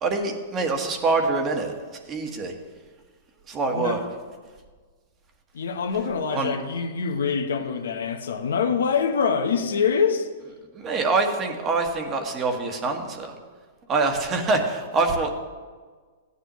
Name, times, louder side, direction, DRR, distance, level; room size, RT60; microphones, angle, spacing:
voice 1, 0.0-1.7 2.1-2.5 3.5-4.0 6.3-6.5 10.7-13.3 13.9-15.3, right 3 dB, 25° right, 4 dB, 1.4 m, -25 dB
voice 2, 3.7-4.0 5.5-10.3, left 6 dB, 85° left, 6 dB, 1.0 m, -25 dB
15.0 x 9.8 x 3.1 m, 1.5 s
hypercardioid pair, 135°, 0 cm